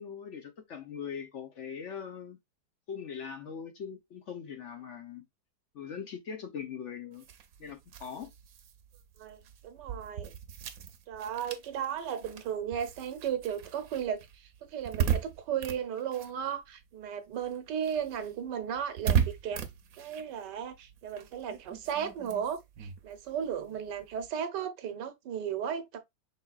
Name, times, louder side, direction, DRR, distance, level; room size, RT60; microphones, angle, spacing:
voice 1, 0.0-2.4 2.9-5.2 5.7-7.2 7.6-8.3, left 7 dB, 60° left, 0.8 m, -41 dB
sound 1, 7.1-17.0 17.3-24.3, right 8 dB, 65° right, 1.1 m, -37 dB
voice 2, 9.2-10.3 11.1-19.6 19.9-26.0, right 8 dB, 90° right, 1.5 m, -35 dB
5.5 x 3.5 x 2.3 m
omnidirectional pair, 1.8 m